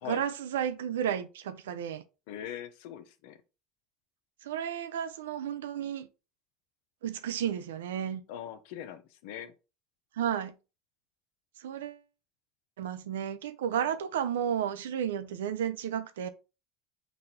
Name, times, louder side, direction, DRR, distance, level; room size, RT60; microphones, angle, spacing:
voice 1, 0.0-2.0 4.4-6.1 7.0-8.2 10.1-10.5 11.6-12.0 12.8-16.3, right 9 dB, 85° right, 0.5 m, -32 dB
voice 2, 2.3-3.4 8.3-9.5 13.7-13.9, left 10 dB, 70° left, 0.6 m, -41 dB
4.0 x 2.5 x 4.3 m
hypercardioid pair, 90°, 0 cm